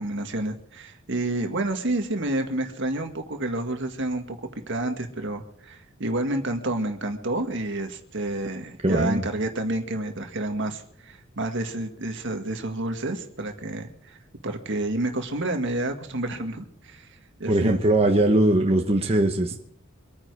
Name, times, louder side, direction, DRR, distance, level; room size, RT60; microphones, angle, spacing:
voice 1, 0.0-4.4 4.7-14.2 14.4-17.1 17.4-17.8, right 2 dB, 60° right, 5 dB, 1.8 m, -29 dB
voice 2, 8.8-9.3 17.5-19.6, right 1 dB, 30° right, 2 dB, 1.2 m, -21 dB
25.0 x 9.7 x 4.8 m, 0.63 s
head